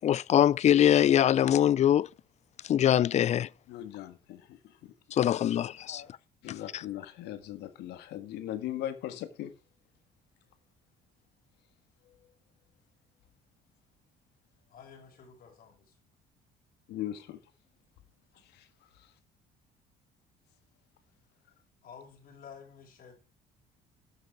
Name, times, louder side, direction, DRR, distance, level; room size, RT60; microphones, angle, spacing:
voice 1, 0.0-2.1 2.6-3.5 5.1-6.0 6.5-6.8, left 10 dB, 40° left, 0.4 m, -23 dB
voice 2, 3.7-4.9 5.9-6.1 6.4-9.5 16.9-17.4 18.5-18.6, left 12 dB, 85° left, 1.6 m, -39 dB
voice 3, 14.7-16.0 18.5-18.6 21.8-23.2, left 6 dB, 60° left, 5.3 m, -51 dB
12.0 x 6.6 x 4.7 m
cardioid pair, 110°, 17 cm